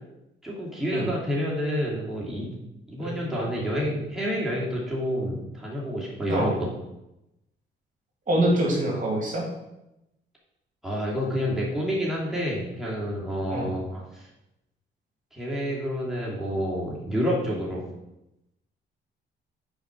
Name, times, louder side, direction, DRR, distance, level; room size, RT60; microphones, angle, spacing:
voice 1, 0.4-2.5 2.9-6.7 10.8-14.3 15.3-17.8, equal, ahead, -5 dB, 2.7 m, -29 dB
voice 2, 8.3-9.4 13.5-13.7, right 1 dB, 40° right, -2 dB, 2.9 m, -24 dB
7.1 x 5.1 x 6.1 m, 0.88 s
cardioid pair, 90°, 20 cm